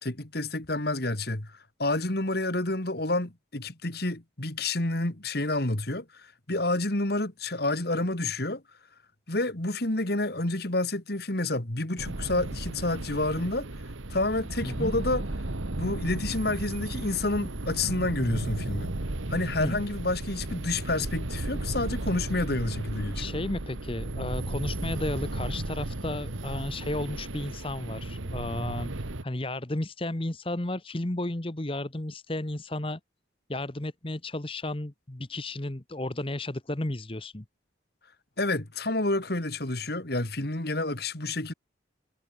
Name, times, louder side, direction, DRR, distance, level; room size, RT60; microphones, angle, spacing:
voice 1, 0.0-8.6 9.3-13.7 14.1-15.2 15.8-18.9 19.3-23.2 38.4-41.5, left 2 dB, 55° left, 2.4 m, -29 dB
sound 1, 12.0-29.2, right 2 dB, 90° right, 1.6 m, -34 dB
voice 2, 14.6-14.9 19.6-19.8 23.1-33.0 33.5-37.4, left 1 dB, 30° left, 1.1 m, -33 dB
head